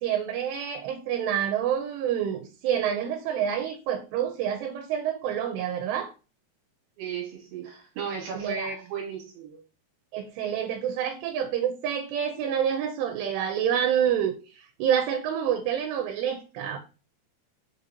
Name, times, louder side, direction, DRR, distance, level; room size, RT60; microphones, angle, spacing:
voice 1, 0.0-6.1 8.3-8.7 10.1-16.8, right 9 dB, 85° right, 2.7 m, -28 dB
voice 2, 7.0-9.6, right 6 dB, 70° right, 2.8 m, -35 dB
6.1 x 2.7 x 2.6 m
omnidirectional pair, 4.8 m